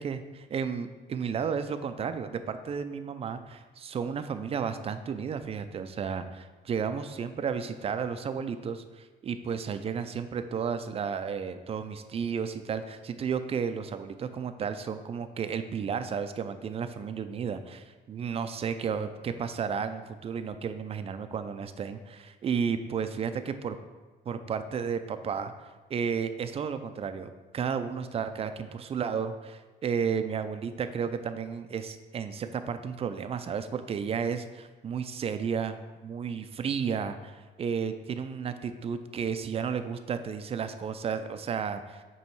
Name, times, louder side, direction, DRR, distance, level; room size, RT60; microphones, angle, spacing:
voice 1, 0.0-23.8 24.3-25.5 25.9-35.8 36.0-42.0, right 6 dB, 35° right, 10 dB, 0.4 m, -33 dB
8.3 x 3.1 x 4.6 m, 1.3 s
cardioid pair, 110°, 17 cm